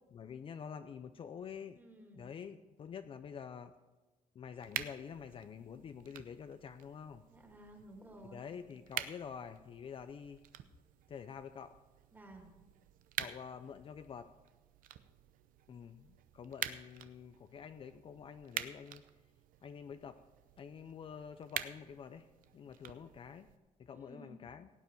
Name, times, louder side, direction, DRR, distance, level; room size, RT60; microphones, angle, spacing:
voice 1, 0.1-1.8 2.1-3.7 4.4-7.3 8.3-10.4 11.1-11.7 13.2-14.3 15.7-19.0 19.6-20.2 20.6-22.3 22.5-23.5 23.8-24.7, left 7 dB, 40° left, 10 dB, 0.5 m, -48 dB
voice 2, 1.7-2.3 7.3-8.5 12.1-12.5 23.9-24.4, right 1 dB, 15° right, 1 dB, 2.5 m, -55 dB
sound 1, 4.6-23.6, right 11 dB, 85° right, 0.7 m, -47 dB
17.0 x 9.1 x 4.6 m, 1.2 s
cardioid pair, 135°, 14 cm